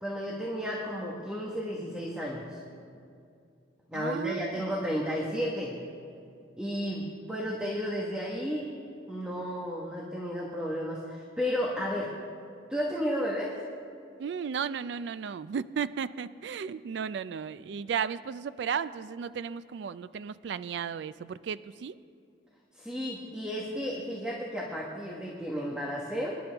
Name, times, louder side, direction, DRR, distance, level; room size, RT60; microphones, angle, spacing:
voice 1, 0.0-2.6 3.9-5.8 6.5-8.7 9.1-12.1 12.7-13.5 22.7-26.4, equal, 5° right, -3 dB, 1.3 m, -33 dB
voice 2, 3.9-4.6 14.2-21.9, right 7 dB, 65° right, 15 dB, 0.3 m, -34 dB
24.5 x 11.0 x 3.5 m, 2.4 s
head